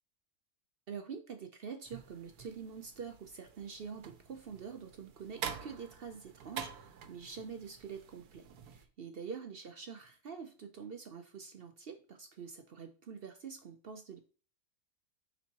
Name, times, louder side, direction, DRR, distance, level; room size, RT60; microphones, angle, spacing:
voice 1, 0.9-14.2, right 6 dB, 55° right, 6 dB, 0.6 m, -46 dB
sound 1, 1.9-8.9, right 8 dB, 85° right, 1.3 m, -47 dB
7.1 x 5.4 x 2.9 m, 0.38 s
omnidirectional pair, 1.6 m